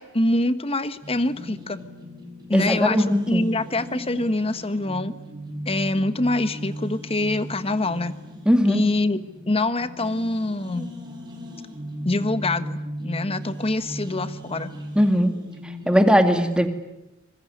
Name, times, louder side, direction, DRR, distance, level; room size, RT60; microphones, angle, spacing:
voice 1, 0.0-1.8 2.5-5.1 5.7-8.2 8.6-9.2 9.5-10.9 12.0-14.7, left 2 dB, 30° left, 12 dB, 1.3 m, -25 dB
sound 1, 1.0-16.1, equal, 20° right, 6.0 m, -37 dB
voice 2, 2.5-3.5 8.5-8.8 14.9-15.3 15.9-16.7, equal, 5° right, 6 dB, 2.3 m, -19 dB
25.5 x 22.0 x 9.8 m, 0.97 s
head